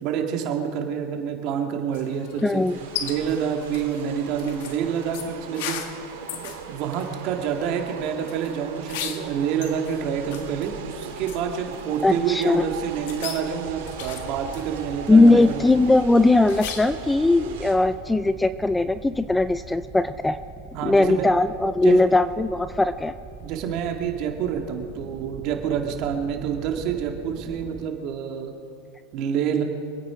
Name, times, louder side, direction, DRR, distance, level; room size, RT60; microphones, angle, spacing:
voice 1, 0.0-2.6 3.0-6.0 6.3-15.6 20.7-21.3 21.8-22.0 23.4-28.5 29.1-29.6, right 8 dB, 50° right, 3 dB, 2.2 m, -28 dB
sound 1, 1.9-17.1, left 9 dB, 70° left, 1.5 m, -39 dB
voice 2, 2.4-2.8 12.0-12.6 15.1-20.4 20.8-23.1, left 2 dB, 5° left, 13 dB, 0.4 m, -19 dB
sound 2, 2.6-17.7, right 6 dB, 85° right, 3.3 m, -39 dB
sound 3, 13.6-27.9, right 4 dB, 20° right, 1.7 m, -42 dB
25.5 x 9.2 x 5.1 m, 2.4 s
supercardioid pair, 125°, 0 cm